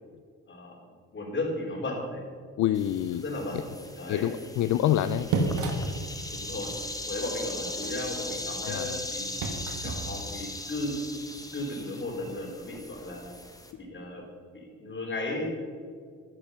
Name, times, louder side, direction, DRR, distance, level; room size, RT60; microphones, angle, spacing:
voice 1, 0.5-0.8 1.1-2.2 3.1-3.6 4.0-4.3 6.3-6.7 7.0-9.4 9.8-11.0 11.5-13.3 13.8-14.2 14.5-15.5, left 2 dB, 40° left, 0 dB, 4.0 m, -35 dB
voice 2, 2.6-3.2 4.1-5.3 8.6-9.0, left 11 dB, 70° left, 11 dB, 0.5 m, -27 dB
sound 1, 2.7-13.7, left 2 dB, 10° left, 1.4 m, -39 dB
sound 2, 5.0-10.0, right 3 dB, 80° right, 1.7 m, -34 dB
12.5 x 9.7 x 5.7 m, 2.1 s
cardioid pair, 90°, 30 cm